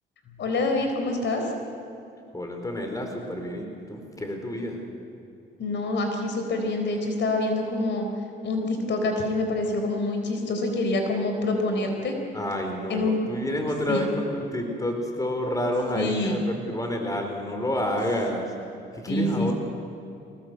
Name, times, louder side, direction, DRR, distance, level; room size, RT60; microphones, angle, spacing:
voice 1, 0.4-1.5 5.6-8.1 8.4-12.2 12.9-13.2 13.9-14.0 15.9-16.3 19.1-19.5, left 2 dB, 65° left, 4 dB, 4.2 m, -26 dB
voice 2, 2.3-4.8 12.3-18.5 18.9-19.5, left 1 dB, 15° left, 3 dB, 4.5 m, -29 dB
23.5 x 19.0 x 8.2 m, 2.8 s
cardioid pair, 90°, 20 cm